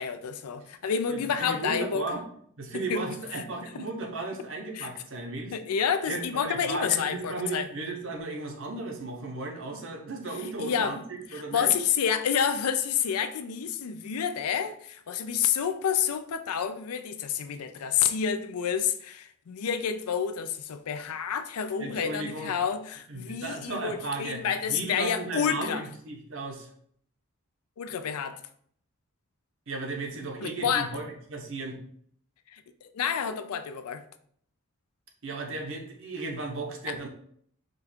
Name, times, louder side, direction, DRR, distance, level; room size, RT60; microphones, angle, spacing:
voice 1, 0.0-2.0 2.9-3.0 3.6-3.7 4.7-4.9 5.5-7.7 10.6-11.0 11.3-25.8 27.8-28.4 30.4-30.9 32.5-32.6 32.9-34.0 36.9-37.0, left 7 dB, 85° left, 0.4 m, -29 dB
voice 2, 1.1-2.2 2.6-5.5 6.1-11.7 21.8-22.5 23.1-26.7 29.7-31.8 35.2-37.1, right 3 dB, 60° right, 0.9 m, -35 dB
5.1 x 2.4 x 4.3 m
head